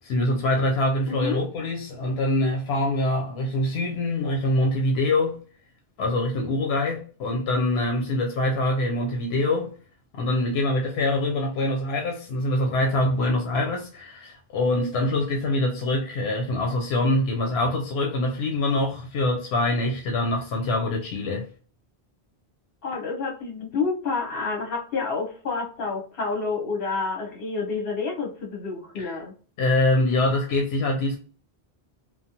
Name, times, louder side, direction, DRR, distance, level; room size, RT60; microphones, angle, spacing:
voice 1, 0.0-5.4 6.0-9.7 10.1-21.5 29.0-29.1 29.6-31.2, left 1 dB, 85° left, 0.8 m, -24 dB
voice 2, 1.1-1.4 22.8-29.3, left 4 dB, 65° left, 1.1 m, -29 dB
3.1 x 2.0 x 2.8 m
omnidirectional pair, 1.0 m